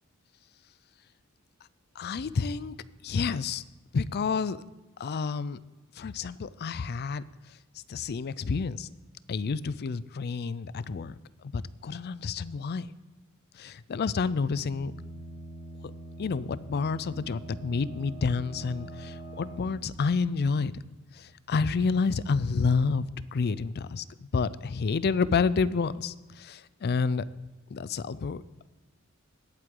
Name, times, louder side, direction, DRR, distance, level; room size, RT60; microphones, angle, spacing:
voice 1, 2.0-2.7 3.0-3.6 3.9-4.6 5.0-5.6 5.9-7.6 7.9-8.9 9.3-11.2 11.5-12.9 13.5-14.9 16.2-20.8 21.1-27.2 27.7-28.7, left 4 dB, 50° left, 18 dB, 0.4 m, -29 dB
sound 1, 14.7-21.3, right 1 dB, 80° left, 1.6 m, -44 dB
19.0 x 7.7 x 3.8 m, 1.1 s
head